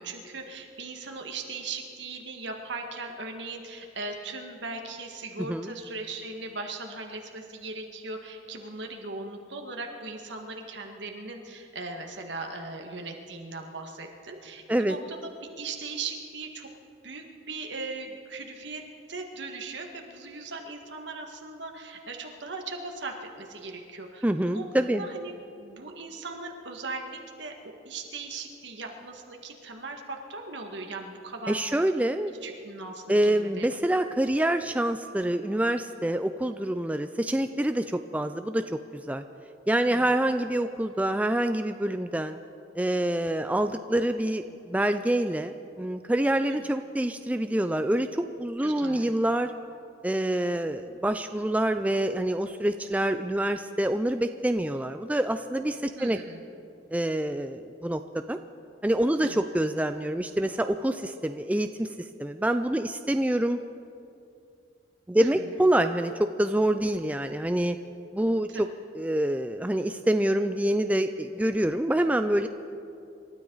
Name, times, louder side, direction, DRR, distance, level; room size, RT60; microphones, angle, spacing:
voice 1, 0.0-15.3 15.6-16.7 17.0-18.8 19.1-24.7 25.0-31.8 32.4-33.7 39.9-40.2 46.5-46.6 48.6-49.1 55.9-56.4 59.2-59.4 65.2-65.6 68.5-68.6, right 3 dB, 70° right, 3 dB, 1.8 m, -39 dB
voice 2, 24.2-25.1 31.5-32.3 33.1-39.2 39.7-42.4 42.8-49.5 50.0-56.2 56.9-58.4 58.8-63.6 65.1-67.8 68.1-68.5 68.9-72.5, right 1 dB, 10° right, 8 dB, 0.3 m, -26 dB
27.5 x 13.0 x 4.0 m, 2.5 s
head